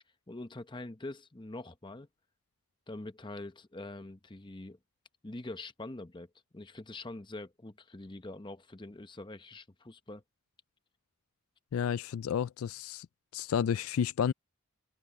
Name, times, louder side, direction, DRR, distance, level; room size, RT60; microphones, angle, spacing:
voice 1, 0.3-2.1 2.9-4.8 5.2-10.2, left 2 dB, 20° left, 0.8 m, -44 dB
voice 2, 11.7-13.1 13.3-14.3, left 8 dB, 80° left, 0.3 m, -31 dB
open air
head